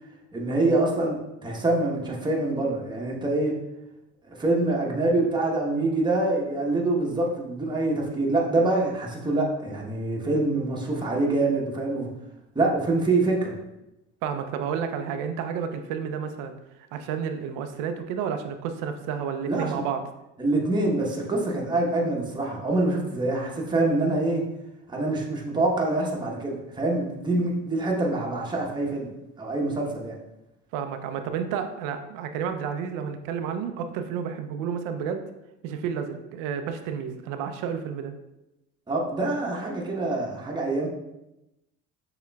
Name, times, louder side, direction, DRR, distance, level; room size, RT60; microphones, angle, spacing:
voice 1, 0.3-3.6 4.2-12.1 12.5-13.5 19.5-19.8 20.4-24.5 24.9-29.1 29.4-30.1 38.9-40.9, right 2 dB, 15° right, -2 dB, 1.0 m, -25 dB
voice 2, 14.2-16.5 16.9-20.0 30.7-35.2 35.6-38.1, right 7 dB, 85° right, 7 dB, 0.5 m, -31 dB
6.6 x 2.9 x 2.3 m, 0.92 s
supercardioid pair, 95°, 31 cm